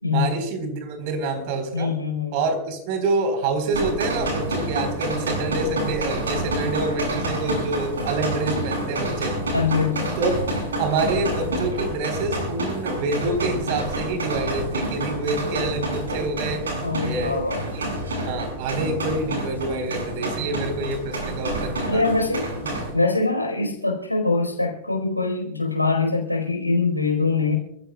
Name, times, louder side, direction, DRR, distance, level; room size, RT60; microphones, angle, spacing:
voice 1, 0.1-1.9 2.3-9.4 10.2-10.3 10.8-16.7 17.0-17.8 18.2-22.1, right 3 dB, 45° right, 7 dB, 4.2 m, -27 dB
voice 2, 1.7-2.5 9.5-10.1 16.8-17.9 21.9-22.5 22.9-27.5, left 3 dB, 85° left, 2 dB, 4.5 m, -23 dB
sound 1, 3.7-22.9, right 1 dB, 70° right, 7.3 m, -28 dB
30.0 x 15.0 x 2.4 m, 0.78 s
figure-of-eight pair, 90°, 0 cm